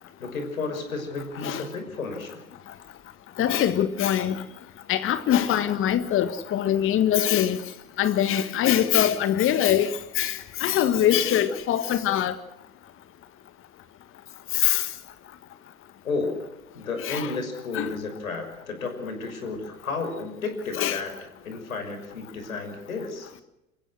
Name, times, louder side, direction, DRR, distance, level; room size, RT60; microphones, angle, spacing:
voice 1, 0.2-2.4 16.0-16.3 16.7-21.1 21.4-23.3, left 4 dB, 75° left, 6.1 m, -32 dB
voice 2, 3.4-4.4 4.9-7.6 8.0-12.3 14.5-14.9 17.0-17.3 17.7-17.9 20.7-21.0, left 10 dB, 30° left, 1.6 m, -23 dB
29.0 x 15.5 x 6.3 m
figure-of-eight pair, 85°, 42 cm